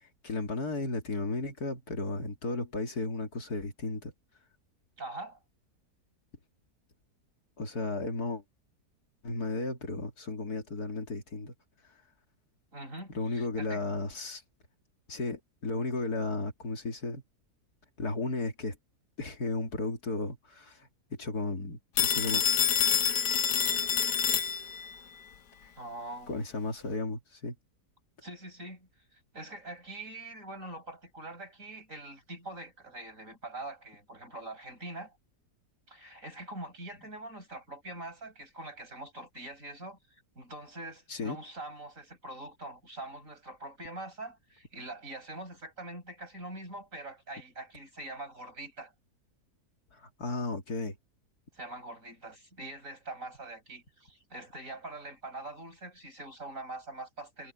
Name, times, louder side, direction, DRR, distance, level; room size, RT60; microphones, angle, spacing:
voice 1, 0.0-4.1 7.6-8.4 9.2-11.5 13.1-14.4 15.1-17.2 18.0-18.8 19.2-22.4 26.3-27.5 41.1-41.4 49.9-50.9, left 3 dB, 70° left, 3.1 m, -34 dB
voice 2, 5.0-5.4 12.7-13.8 25.8-26.4 28.2-35.1 35.9-48.9 51.5-57.5, right 2 dB, 50° right, 8.1 m, -44 dB
Telephone, 22.0-25.0, left 8 dB, 90° left, 1.5 m, -27 dB
omnidirectional pair, 1.7 m